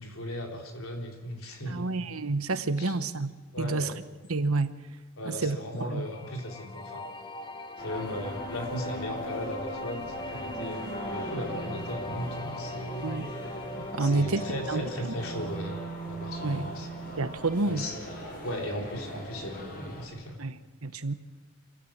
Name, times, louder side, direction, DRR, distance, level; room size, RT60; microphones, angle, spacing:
voice 1, 0.0-1.9 2.8-3.0 3.5-3.9 5.2-7.1 7.8-13.2 14.0-15.8 16.1-16.9 17.6-18.0 18.4-20.4, equal, 75° left, 2 dB, 3.9 m, -37 dB
voice 2, 1.7-3.9 4.3-4.8 5.4-5.6 5.9-6.1 13.0-13.3 13.9-15.1 16.4-16.7 17.2-17.9 20.4-21.1, right 3 dB, 85° right, 12 dB, 1.1 m, -29 dB
sound 1, 6.0-17.1, left 2 dB, 20° left, 1.1 m, -41 dB
sound 2, 7.8-20.1, right 1 dB, 45° left, 6.9 m, -39 dB
sound 3, 9.2-14.4, left 2 dB, 5° right, 2.6 m, -57 dB
26.5 x 16.5 x 7.4 m, 1.3 s
head